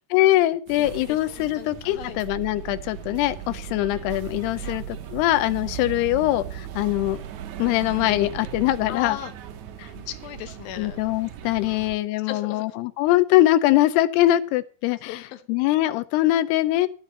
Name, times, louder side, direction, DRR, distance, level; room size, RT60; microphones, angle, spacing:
voice 1, 0.1-4.8 5.1-7.2 7.6-9.2 9.8-9.9 10.8-15.1 15.5-16.9, left 15 dB, 90° left, 12 dB, 2.7 m, -22 dB
sound 1, 0.7-12.0, right 10 dB, 85° right, 1.6 m, -37 dB
voice 2, 0.8-2.2 4.6-4.7 8.9-9.3 9.9-11.0 11.7-11.9 12.2-12.8 14.9-15.4, left 11 dB, 75° left, 9 dB, 2.5 m, -37 dB
13.5 x 5.3 x 7.3 m, 0.41 s
omnidirectional pair, 4.6 m